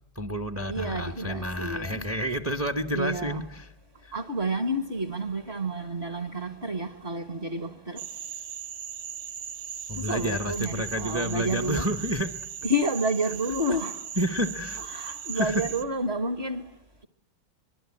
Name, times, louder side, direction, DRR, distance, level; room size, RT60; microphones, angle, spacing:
voice 1, 0.1-3.7 9.9-12.3 14.2-15.6, equal, 15° right, 0.6 m, -30 dB
voice 2, 0.7-2.0 2.9-3.4 4.1-8.0 10.1-11.8 12.6-14.0 14.8-16.6, right 1 dB, 35° right, 1.3 m, -30 dB
sound 1, 8.0-15.8, right 8 dB, 85° right, 2.2 m, -38 dB
25.0 x 21.5 x 9.8 m
omnidirectional pair, 2.3 m